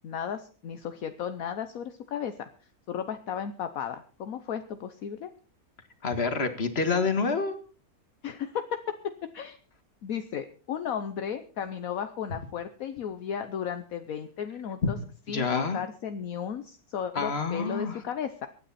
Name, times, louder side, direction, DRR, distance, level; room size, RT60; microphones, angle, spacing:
voice 1, 0.0-2.5 2.9-5.3 8.2-8.8 9.3-9.6 10.0-15.0 15.3-18.5, left 8 dB, 70° left, 9 dB, 1.3 m, -34 dB
voice 2, 6.0-7.6 15.3-15.8 17.2-18.0, left 4 dB, 45° left, 8 dB, 2.0 m, -28 dB
23.5 x 9.7 x 4.2 m, 0.38 s
omnidirectional pair, 1.6 m